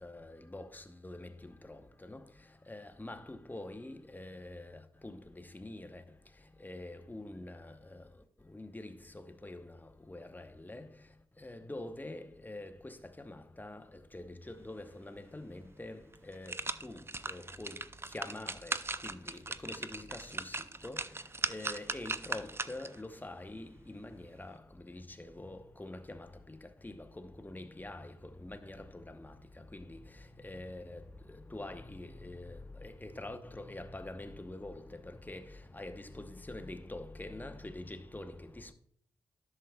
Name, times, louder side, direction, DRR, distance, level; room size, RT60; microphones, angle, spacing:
voice 1, 0.0-2.2 2.7-6.0 6.6-8.0 8.5-9.7 10.1-10.8 11.4-13.8 14.1-16.0 16.3-16.6 16.8-17.8 18.1-20.6 20.8-21.0 21.5-24.6 24.8-26.6 26.8-28.1 28.4-29.3 29.7-30.0 30.4-31.0 31.5-35.4 35.7-38.7, left 2 dB, 15° left, 0.9 m, -45 dB
sound 1, 15.6-15.7 16.1-23.0 23.4-23.5, right 3 dB, 25° right, 0.5 m, -39 dB
11.0 x 7.0 x 2.3 m
supercardioid pair, 45°, 10 cm